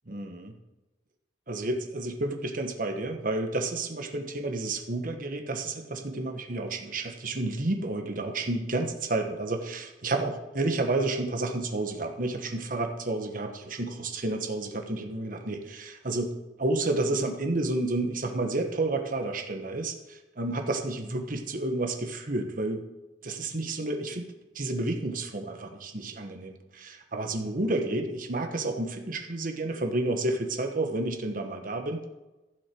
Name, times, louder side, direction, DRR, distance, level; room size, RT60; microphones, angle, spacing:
voice 1, 0.1-0.6 1.5-16.3 16.6-22.8 23.2-24.2 24.5-32.1, right 2 dB, 50° right, 5 dB, 1.3 m, -30 dB
15.5 x 6.5 x 4.6 m, 1.1 s
head